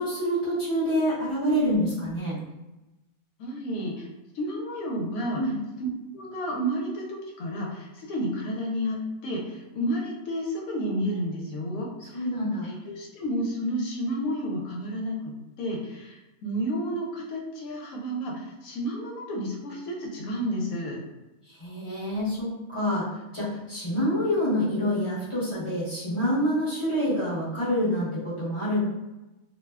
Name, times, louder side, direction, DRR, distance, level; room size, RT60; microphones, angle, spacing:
voice 1, 0.0-2.4 5.3-5.6 12.0-12.7 21.5-23.1 23.3-28.8, equal, 25° left, -9 dB, 0.7 m, -27 dB
voice 2, 3.4-4.1 4.3-5.4 6.1-12.2 12.6-21.0, equal, 75° left, -1 dB, 1.0 m, -31 dB
2.7 x 2.0 x 2.3 m, 1.0 s
omnidirectional pair, 1.5 m